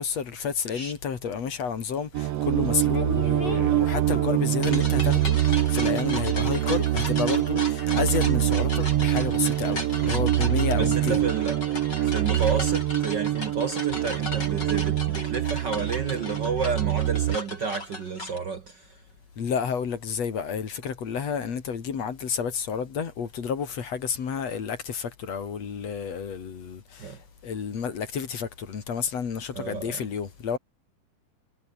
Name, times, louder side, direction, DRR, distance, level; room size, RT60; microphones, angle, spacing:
voice 1, 0.0-11.2 19.4-30.6, left 6 dB, 60° left, 3.7 m, -30 dB
sound 1, 0.7-0.9 2.9-18.4, left 2 dB, 35° left, 6.9 m, -37 dB
sound 2, 2.1-17.4, right 13 dB, 65° right, 1.8 m, -24 dB
voice 2, 10.7-11.6 12.0-18.9 27.0-27.2 29.5-30.0, right 5 dB, 45° right, 1.7 m, -31 dB
omnidirectional pair, 3.3 m